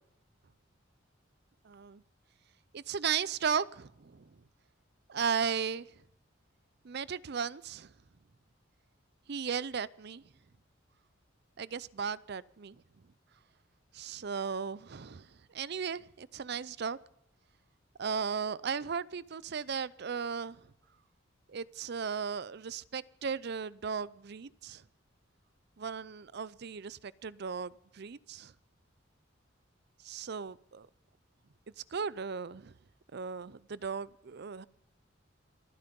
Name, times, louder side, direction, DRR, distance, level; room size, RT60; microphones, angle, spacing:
voice 1, 1.7-2.0 2.7-4.2 5.1-5.9 6.8-7.9 9.3-10.2 11.6-12.8 13.9-15.3 15.5-17.0 18.0-20.6 21.5-24.8 25.8-28.5 30.0-30.9 31.9-32.7 33.1-34.7, right 6 dB, 55° right, 0.5 m, -36 dB
26.0 x 9.6 x 5.3 m
head